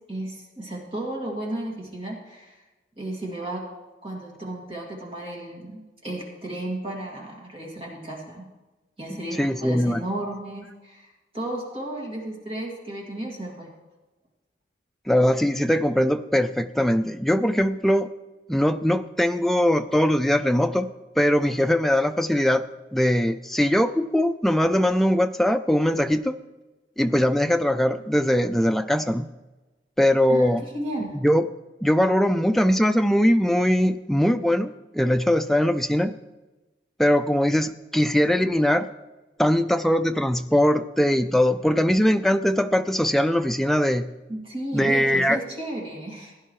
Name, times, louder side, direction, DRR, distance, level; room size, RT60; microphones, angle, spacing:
voice 1, 0.1-2.6 3.0-3.6 4.0-8.5 9.0-13.7 30.3-31.2 44.3-46.3, right 1 dB, 30° right, -2 dB, 2.2 m, -33 dB
voice 2, 9.4-10.0 15.1-18.1 18.5-20.9 21.2-22.6 22.9-26.3 27.0-29.3 30.0-30.6 31.1-31.4 31.8-36.1 37.0-38.9 39.4-44.1 44.7-45.4, equal, ahead, 8 dB, 0.3 m, -21 dB
16.5 x 10.0 x 3.1 m, 1.1 s
head